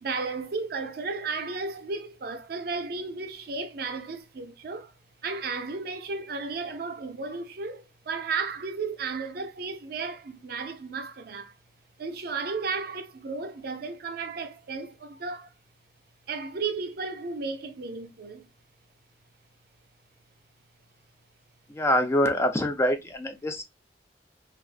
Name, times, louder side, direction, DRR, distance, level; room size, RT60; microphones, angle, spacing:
voice 1, 0.0-4.9 5.2-11.5 12.0-15.5 16.3-18.5, right 4 dB, 60° right, 0.5 m, -34 dB
voice 2, 21.7-23.6, left 1 dB, 15° left, 0.4 m, -25 dB
3.3 x 2.4 x 2.4 m
head